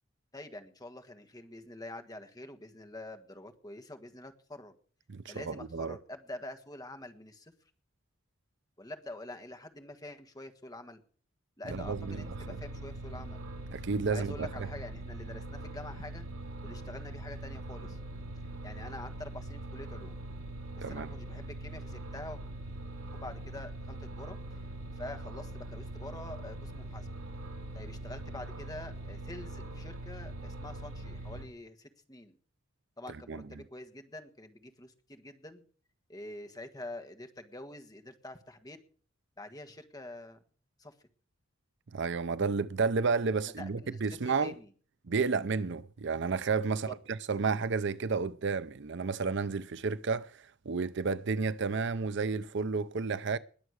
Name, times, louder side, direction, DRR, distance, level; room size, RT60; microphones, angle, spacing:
voice 1, 0.3-4.7 5.2-7.5 8.8-11.0 11.6-13.4 13.8-16.3 16.6-18.0 18.6-20.1 20.7-22.4 23.1-24.4 24.9-27.1 27.7-32.3 33.0-35.6 36.1-38.8 39.4-40.4 40.8-40.9 43.6-44.7 46.7-46.9, left 1 dB, 20° left, 1.6 m, -46 dB
voice 2, 5.1-6.0 11.7-12.2 13.7-14.5 20.8-21.1 33.3-33.4 41.9-44.5 45.1-53.4, right 4 dB, 55° right, 0.6 m, -31 dB
sound 1, 11.7-31.5, right 2 dB, 75° right, 4.9 m, -42 dB
20.5 x 7.6 x 6.4 m
head